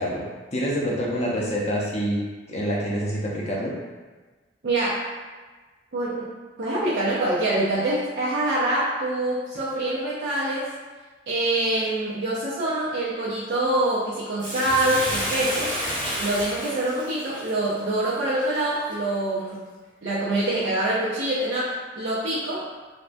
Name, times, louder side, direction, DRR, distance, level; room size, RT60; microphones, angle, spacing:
voice 1, 0.0-2.2 2.5-3.7, equal, 35° left, -4 dB, 0.5 m, -26 dB
voice 2, 4.6-5.0 5.9-6.3 6.6-10.7 11.3-15.7 16.2-19.6 20.0-22.7, right 1 dB, 60° right, -9 dB, 0.5 m, -25 dB
Bathtub (filling or washing), 14.4-18.9 19.5-19.6, equal, 25° right, 1.0 m, -30 dB
3.4 x 2.2 x 2.6 m, 1.3 s
head